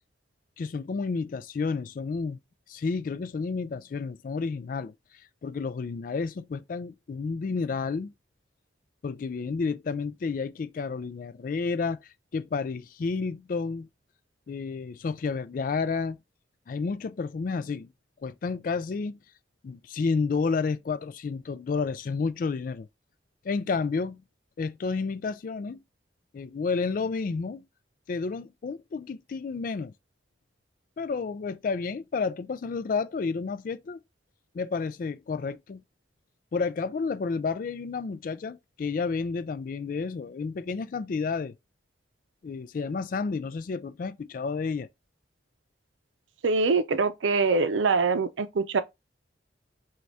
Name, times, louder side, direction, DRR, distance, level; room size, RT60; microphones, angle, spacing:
voice 1, 0.6-2.4 2.7-4.9 5.4-8.1 9.0-12.0 12.3-13.9 14.5-16.2 16.7-17.9 18.2-19.2 19.6-22.9 23.4-24.2 24.6-25.8 26.3-27.6 28.1-29.9 31.0-34.0 34.5-35.8 36.5-41.6 42.4-44.9, left 4 dB, 45° left, 0.3 m, -30 dB
voice 2, 46.4-48.8, right 4 dB, 90° right, 0.5 m, -24 dB
5.0 x 2.3 x 3.3 m
head